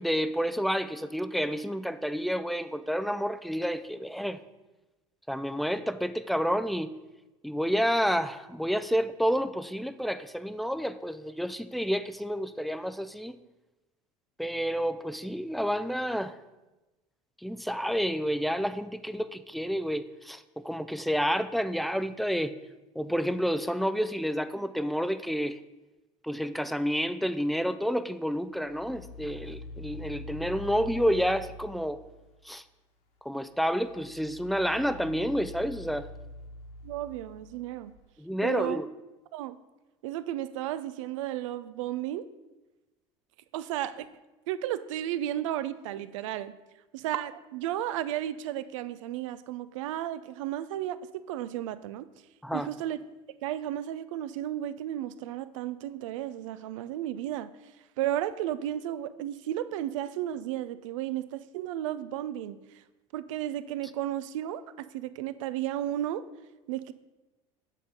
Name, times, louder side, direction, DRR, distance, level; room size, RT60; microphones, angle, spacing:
voice 1, 0.0-4.4 5.3-6.9 7.4-13.4 14.4-16.4 17.4-22.5 23.0-25.6 26.2-32.0 32.4-32.6 33.2-36.1 38.2-38.9 52.4-52.7, equal, ahead, 12 dB, 0.4 m, -29 dB
sound 1, 28.6-32.3 33.6-38.0, left 1 dB, 65° left, 1.6 m, -45 dB
voice 2, 36.8-37.9 38.4-38.8 39.3-39.6 40.0-42.3 43.5-44.1 44.5-46.5 46.9-51.0 51.3-52.0 52.5-53.0 53.4-57.5 58.0-62.8 63.1-66.2 66.7-66.9, right 12 dB, 80° right, 14 dB, 0.4 m, -33 dB
8.4 x 3.6 x 5.4 m, 1.1 s
hypercardioid pair, 75°, 16 cm